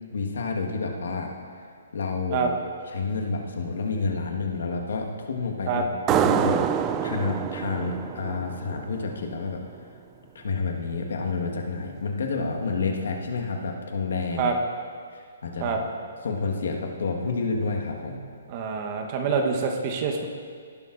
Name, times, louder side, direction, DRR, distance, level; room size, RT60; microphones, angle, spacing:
voice 1, 0.1-1.3 1.9-2.5 2.9-6.6 7.0-9.6 10.3-14.5 15.4-15.8 16.2-18.2, left 4 dB, 75° left, 2 dB, 1.4 m, -29 dB
sound 1, 6.1-9.4, right 9 dB, 20° right, 0.4 m, -26 dB
voice 2, 18.5-20.3, right 5 dB, 40° right, 2 dB, 1.0 m, -26 dB
17.5 x 11.5 x 2.5 m, 2.1 s
hypercardioid pair, 145°, 0 cm